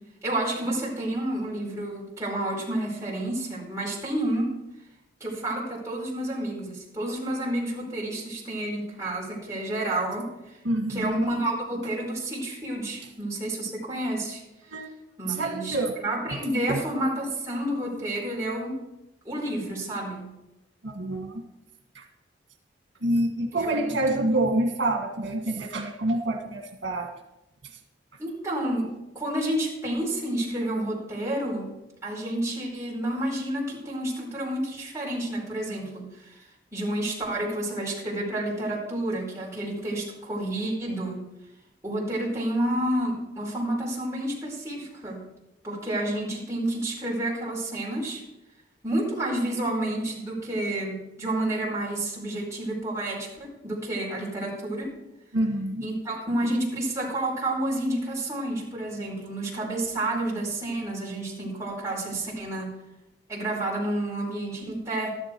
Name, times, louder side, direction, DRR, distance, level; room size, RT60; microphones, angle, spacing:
voice 1, 0.2-4.6 5.2-10.6 10.9-14.4 15.2-18.8 19.2-20.3 23.5-23.8 28.2-31.7 32.0-36.4 36.7-41.2 41.8-45.2 45.6-48.2 48.8-55.0 55.8-62.7 63.3-65.1, right 1 dB, 15° right, -4 dB, 4.7 m, -30 dB
voice 2, 10.6-11.2 14.7-14.9 15.3-15.9 16.7-16.8 20.8-21.4 21.9-22.0 23.0-27.1 55.3-55.9, right 1 dB, 85° right, 2 dB, 1.7 m, -27 dB
13.5 x 12.0 x 4.6 m, 0.93 s
head